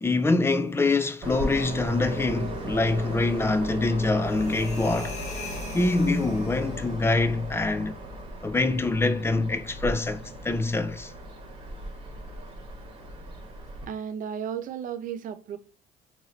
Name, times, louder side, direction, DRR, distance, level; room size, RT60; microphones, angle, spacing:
voice 1, 0.0-5.2 5.7-8.0 8.4-11.1, left 2 dB, 15° left, 0.4 m, -25 dB
Train, 1.2-13.9, equal, 30° right, 1.1 m, -37 dB
sound 1, 4.2-6.9, left 4 dB, 40° left, 1.1 m, -43 dB
voice 2, 13.9-15.6, right 8 dB, 50° right, 0.5 m, -34 dB
3.1 x 2.7 x 3.9 m
cardioid pair, 110°, 17 cm